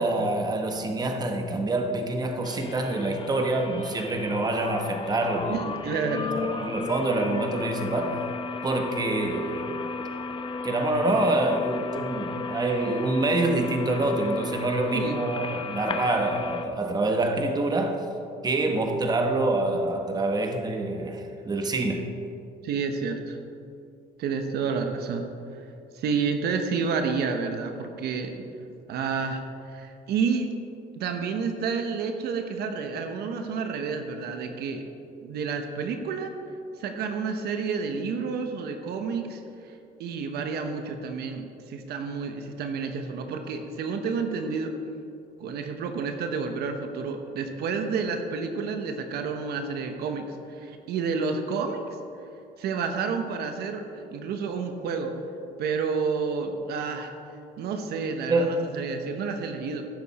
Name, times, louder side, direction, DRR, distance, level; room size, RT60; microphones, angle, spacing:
voice 1, 0.0-5.6 6.4-8.2 8.6-9.9 10.6-18.0 18.4-22.1 58.3-58.5, right 2 dB, 25° right, 4 dB, 1.1 m, -26 dB
sound 1, 2.4-16.7, left 4 dB, 30° left, 0.7 m, -34 dB
voice 2, 5.5-6.3 14.9-15.2 22.6-23.4 24.2-25.2 25.9-28.4 28.9-29.4 29.7-30.5 31.0-34.8 35.2-36.3 36.8-39.7 40.0-44.8 45.4-50.3 50.6-51.9 52.6-55.1 55.6-57.1 57.6-59.9, right 5 dB, 70° right, 6 dB, 1.0 m, -30 dB
15.5 x 6.8 x 4.2 m, 2.6 s
cardioid pair, 110°, 17 cm